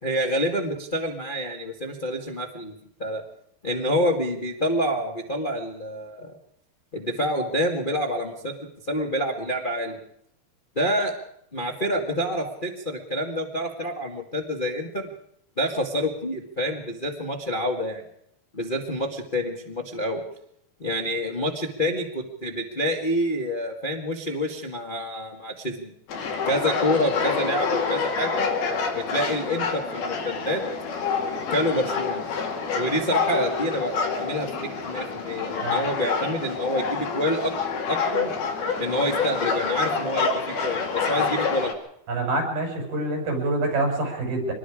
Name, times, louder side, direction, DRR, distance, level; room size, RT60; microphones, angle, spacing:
voice 1, 0.0-2.7 3.0-3.2 3.6-6.3 6.9-8.5 8.9-10.0 10.7-11.1 11.5-15.1 15.6-18.0 18.5-20.2 20.8-25.9 26.4-28.5 28.9-30.6 31.5-32.2 32.8-38.3 38.8-41.7, equal, 30° left, 1 dB, 0.8 m, -27 dB
sound 1, 26.1-41.7, left 5 dB, 90° left, 4.3 m, -27 dB
voice 2, 42.1-44.5, right 2 dB, 80° right, 2 dB, 7.6 m, -26 dB
25.5 x 20.5 x 5.0 m, 0.73 s
omnidirectional pair, 4.3 m